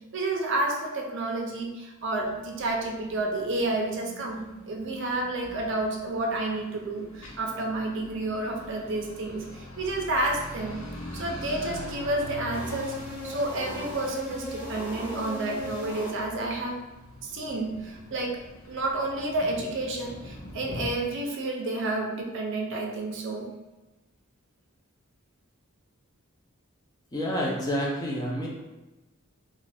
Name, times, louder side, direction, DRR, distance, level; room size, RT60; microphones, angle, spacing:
voice 1, 0.1-10.8 11.1-12.9 13.2-16.8 17.2-18.4 18.7-23.5, right 2 dB, 55° right, 1 dB, 0.5 m, -30 dB
sound 1, 2.0-20.9, left 1 dB, 80° left, 0.6 m, -43 dB
sound 2, 12.5-16.6, left 1 dB, 35° left, 1.2 m, -38 dB
voice 2, 27.1-28.5, equal, 20° left, -3 dB, 0.5 m, -28 dB
2.5 x 2.4 x 3.3 m, 1.0 s
head